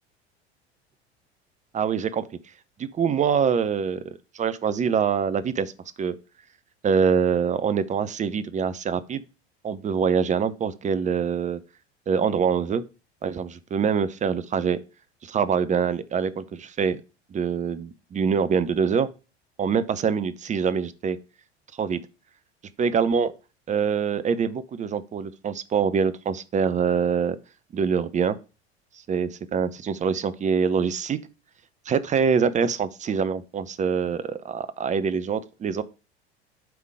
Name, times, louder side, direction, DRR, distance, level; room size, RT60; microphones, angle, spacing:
voice 1, 1.7-2.2 2.8-4.0 4.3-5.7 6.0-6.1 6.8-9.2 9.6-11.6 12.1-12.8 13.2-14.8 15.2-17.0 17.3-19.1 19.6-21.2 21.8-22.0 22.8-23.3 23.7-27.4 27.7-28.4 29.1-31.2 31.9-35.8, right 6 dB, 20° right, 0.7 m, -24 dB
9.3 x 3.8 x 4.8 m
figure-of-eight pair, 75°, 33 cm